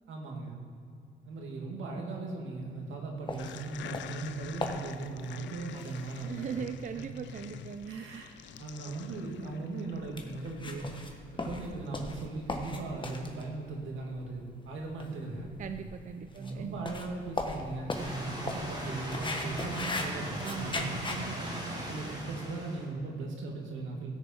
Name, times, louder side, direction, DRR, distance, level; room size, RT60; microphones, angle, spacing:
voice 1, 0.1-0.6 1.2-7.0 7.9-10.9 11.3-15.5 16.3-21.0 21.8-24.1, right 3 dB, 75° right, 0 dB, 2.2 m, -38 dB
sound 1, 3.3-21.2, left 2 dB, 25° left, 1.3 m, -40 dB
sound 2, 3.4-12.0, left 11 dB, 65° left, 0.4 m, -48 dB
voice 2, 6.2-8.2 15.6-16.9 20.4-22.0, right 7 dB, 40° right, 8 dB, 0.5 m, -40 dB
sound 3, 17.9-22.9, equal, 20° right, 2.4 m, -39 dB
16.0 x 6.8 x 4.5 m, 2.4 s
cardioid pair, 90°, 20 cm